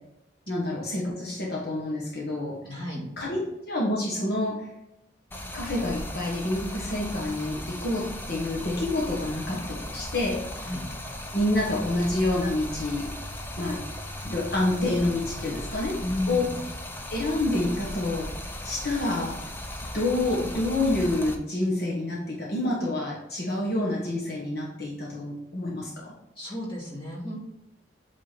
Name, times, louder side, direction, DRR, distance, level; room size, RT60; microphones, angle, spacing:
voice 1, 0.5-2.5 3.2-3.4 3.6-4.7 5.5-10.4 11.3-13.1 13.6-13.8 14.2-16.0 16.3-16.4 17.1-18.3 18.6-19.3 19.9-26.1, left 1 dB, 55° left, -4 dB, 1.4 m, -28 dB
voice 2, 2.6-3.0 10.6-10.8 16.0-16.6 26.4-27.4, left 1 dB, 25° left, -5 dB, 2.2 m, -32 dB
Stream, 5.3-21.3, left 1 dB, 10° left, 0.6 m, -37 dB
8.2 x 4.0 x 4.1 m, 0.86 s
head